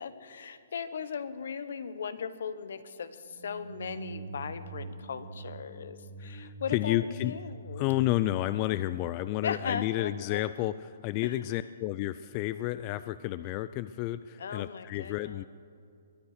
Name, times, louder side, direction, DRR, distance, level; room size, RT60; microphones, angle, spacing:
voice 1, 0.0-7.8 9.4-10.4 11.2-11.4 14.4-15.4, left 6 dB, 70° left, 13 dB, 1.0 m, -38 dB
sound 1, 3.3-9.3, right 2 dB, 85° right, 2.3 m, -44 dB
voice 2, 6.2-7.4 7.8-15.4, left 15 dB, 30° left, 14 dB, 0.3 m, -31 dB
21.5 x 9.5 x 6.6 m, 2.4 s
hypercardioid pair, 155°, 0 cm